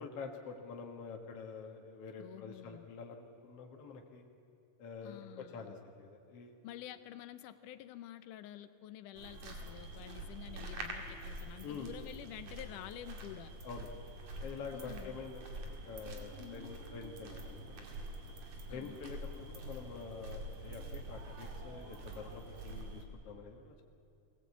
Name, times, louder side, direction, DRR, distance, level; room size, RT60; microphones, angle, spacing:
voice 1, 0.0-4.2 4.8-6.5 11.6-11.9 13.6-13.9 14.4-18.1 18.7-23.8, left 5 dB, 55° left, 1 dB, 2.3 m, -47 dB
voice 2, 2.2-2.9 5.0-5.8 6.6-13.5 14.7-15.2 16.4-16.8 18.7-19.1, left 12 dB, 80° left, 12 dB, 2.2 m, -49 dB
sound 1, 9.2-23.1, right 1 dB, 60° right, 3.3 m, -46 dB
22.0 x 18.0 x 8.4 m, 2.7 s
omnidirectional pair, 3.7 m